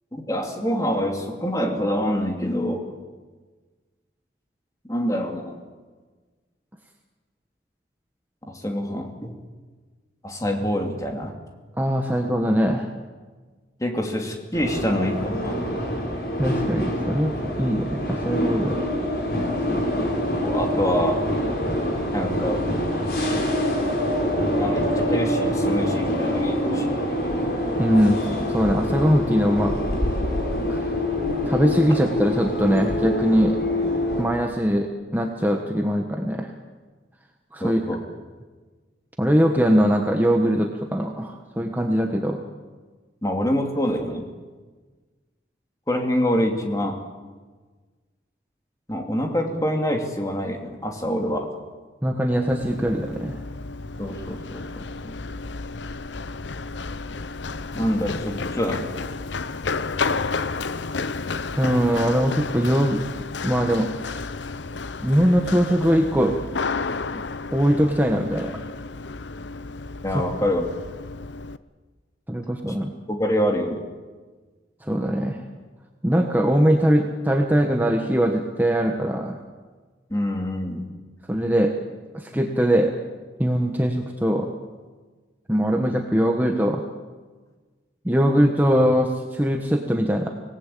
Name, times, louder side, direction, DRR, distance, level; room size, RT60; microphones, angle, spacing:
voice 1, 0.1-2.9 4.8-5.6 8.5-9.4 10.2-11.3 13.8-15.6 20.4-21.2 22.1-22.7 24.6-27.3 37.6-38.0 43.2-44.2 45.9-47.0 48.9-51.5 54.0-55.1 57.7-58.9 70.0-70.6 73.2-73.8 80.1-80.9, equal, 20° left, 3 dB, 2.7 m, -26 dB
voice 2, 11.8-12.9 16.4-18.8 27.8-29.8 30.7-31.0 31.4-33.6 34.2-36.5 37.5-37.8 39.2-42.4 52.0-53.4 61.6-63.0 63.4-64.3 65.0-66.4 67.5-68.6 70.1-70.2 72.3-72.9 74.8-75.4 76.0-79.4 81.3-81.7 82.1-82.9 83.4-84.5 85.5-86.8 88.0-90.3, equal, 10° right, 3 dB, 1.2 m, -21 dB
sound 1, 14.5-34.2, left 1 dB, 55° left, 5.3 m, -25 dB
Run, 52.5-71.6, left 4 dB, 80° left, 0.8 m, -32 dB
25.5 x 18.5 x 8.5 m, 1.4 s
head